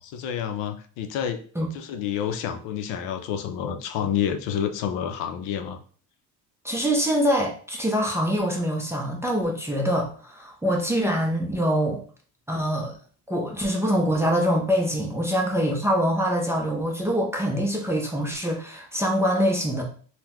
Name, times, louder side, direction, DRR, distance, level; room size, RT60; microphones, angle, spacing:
voice 1, 0.0-1.4 1.7-5.8, left 9 dB, 85° left, 7 dB, 0.6 m, -29 dB
voice 2, 6.6-12.0 12.5-12.9 13.3-19.8, equal, 5° right, 0 dB, 0.4 m, -24 dB
3.8 x 2.2 x 2.9 m, 0.43 s
cardioid pair, 130°, 42 cm